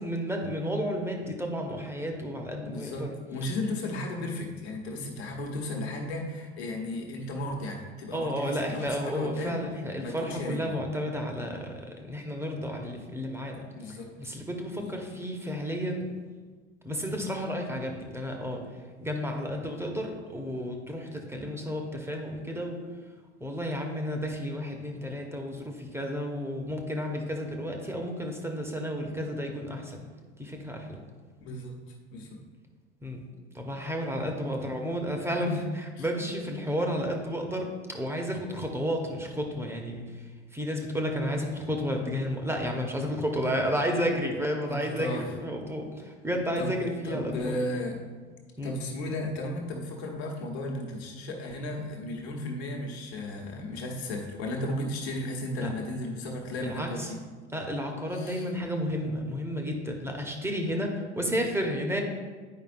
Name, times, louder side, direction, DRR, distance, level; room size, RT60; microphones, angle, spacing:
voice 1, 0.0-3.1 8.1-13.6 14.2-16.1 16.8-18.6 19.0-22.8 23.4-30.1 30.4-31.0 33.0-33.2 33.5-40.0 40.5-47.5 48.6-48.8 55.5-55.7 56.6-57.1 57.5-62.0, equal, 5° right, 2 dB, 0.9 m, -32 dB
voice 2, 2.7-9.7 10.0-10.7 13.7-14.3 14.7-15.0 31.4-31.7 32.1-32.4 34.4-34.6 36.0-36.1 44.6-45.3 46.6-46.7 47.0-48.0 48.6-57.2 58.1-58.5 61.1-61.4, left 1 dB, 70° left, 1 dB, 1.2 m, -35 dB
9.4 x 5.0 x 2.5 m, 1.4 s
figure-of-eight pair, 70°, 34 cm